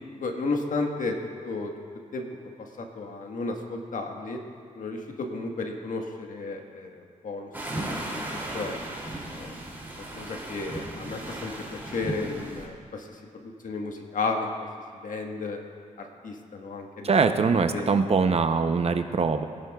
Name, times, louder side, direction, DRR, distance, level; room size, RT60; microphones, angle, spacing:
voice 1, 0.2-1.1 1.4-1.7 2.1-2.2 2.8-4.4 4.7-8.2 8.5-8.8 9.4-9.6 10.2-14.5 15.0-15.6 16.0-17.3 17.7-17.9, left 3 dB, 65° left, 2 dB, 1.5 m, -33 dB
sound 1, 7.5-12.7, right 1 dB, 15° right, 2.9 m, -36 dB
voice 2, 17.0-19.4, right 5 dB, 45° right, 8 dB, 0.7 m, -23 dB
21.5 x 10.5 x 2.4 m, 2.1 s
cardioid pair, 90°, 14 cm